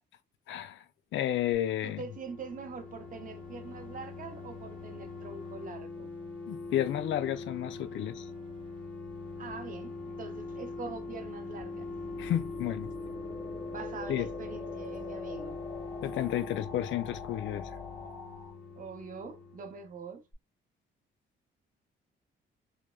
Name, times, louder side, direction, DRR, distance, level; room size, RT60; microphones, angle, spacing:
voice 1, 0.5-0.8 1.1-2.0 6.5-8.3 12.2-12.9 14.1-14.3 16.0-17.7, left 12 dB, 70° left, 0.4 m, -32 dB
sound 1, 1.8-20.0 20.3-20.4, left 3 dB, 5° left, 0.9 m, -42 dB
voice 2, 1.8-6.1 9.4-11.9 13.7-15.6 18.8-20.2, right 4 dB, 45° right, 0.7 m, -44 dB
sound 2, 9.8-18.5, left 4 dB, 30° left, 1.8 m, -46 dB
3.1 x 2.0 x 2.2 m
cardioid pair, 90°, 20 cm